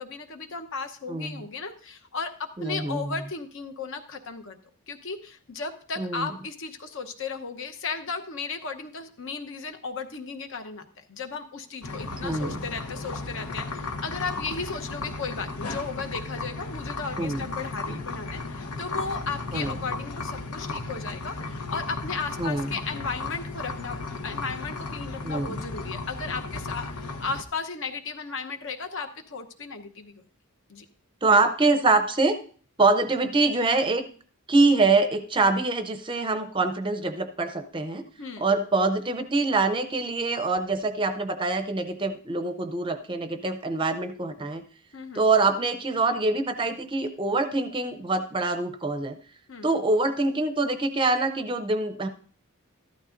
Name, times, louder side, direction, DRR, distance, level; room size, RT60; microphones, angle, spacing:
voice 1, 0.0-4.6 4.9-30.2 30.7-30.8 38.2-38.4 44.9-45.3 49.5-49.8, left 4 dB, 60° left, 6 dB, 0.9 m, -35 dB
voice 2, 2.6-3.1 6.0-6.3 12.2-12.6 17.2-17.4 17.9-18.0 19.5-19.7 22.4-22.7 25.2-25.6 31.2-32.4 32.8-34.0 34.5-38.0 38.4-44.6 45.2-49.2 49.6-52.1, right 3 dB, 20° right, 7 dB, 0.6 m, -24 dB
sound 1, 11.8-27.4, left 3 dB, 85° left, 1.0 m, -35 dB
14.0 x 12.0 x 2.6 m, 0.43 s
head